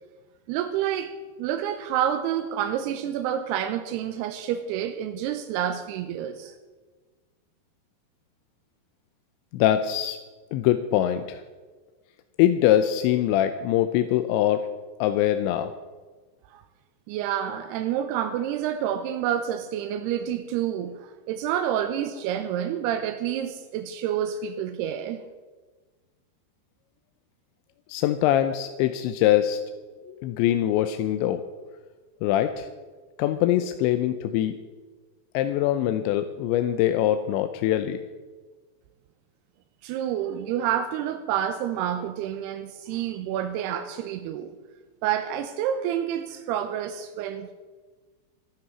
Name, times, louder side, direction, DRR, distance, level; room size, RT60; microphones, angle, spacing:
voice 1, 0.5-1.1 1.4-6.6 16.5-16.6 17.1-25.2 39.8-44.5 45.0-47.5, right 10 dB, 80° right, 8 dB, 2.5 m, -28 dB
voice 2, 9.5-10.2 10.5-11.4 12.4-14.7 15.0-15.7 27.9-29.6 30.1-31.6 32.2-32.7 33.2-34.6 35.3-38.0, left 12 dB, 90° left, 9 dB, 2.9 m, -23 dB
13.0 x 12.0 x 6.0 m, 1.4 s
omnidirectional pair, 5.2 m